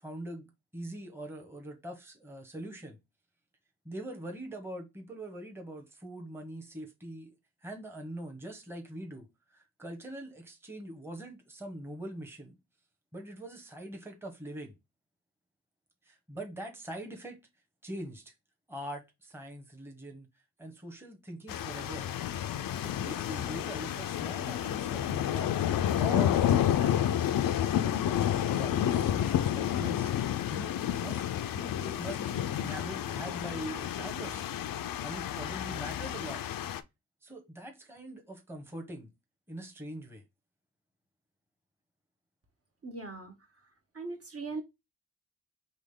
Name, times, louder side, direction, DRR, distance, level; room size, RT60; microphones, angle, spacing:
voice 1, 0.0-3.0 3.8-7.3 7.6-12.6 13.1-14.8 16.0-17.4 17.8-18.3 18.7-20.3 20.6-22.1 22.8-26.9 27.7-31.2 31.5-34.5 35.0-36.4 37.2-39.1 39.5-40.2, right 1 dB, 5° right, 1.0 m, -43 dB
sound 1, 21.5-36.8, left 10 dB, 65° left, 0.5 m, -30 dB
voice 2, 42.8-43.3 43.9-44.6, right 3 dB, 40° right, 1.1 m, -39 dB
3.9 x 3.1 x 3.6 m
cardioid pair, 80°, 37 cm